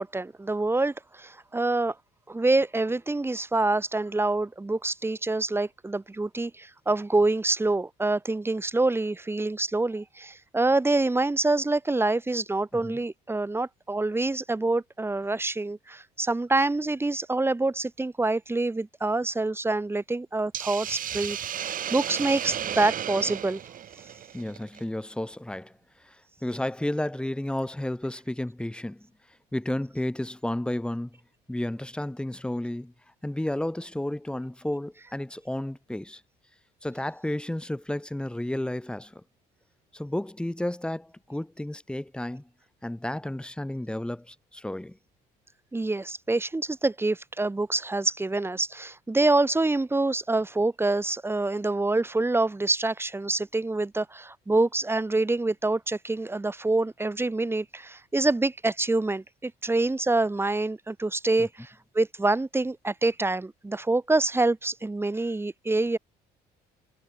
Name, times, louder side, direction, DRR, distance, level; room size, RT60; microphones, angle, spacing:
voice 1, 0.0-2.0 2.3-23.6 45.7-66.0, right 2 dB, 15° right, 3.7 m, -26 dB
Hiss, 20.5-24.8, right 10 dB, 55° right, 3.9 m, -34 dB
voice 2, 24.3-25.7 26.0-26.2 26.4-29.1 29.5-31.2 31.5-32.9 33.2-36.2 36.8-39.2 39.9-42.5 42.8-45.0 61.4-61.5, left 1 dB, 5° left, 3.9 m, -32 dB
cardioid pair, 110°, 17 cm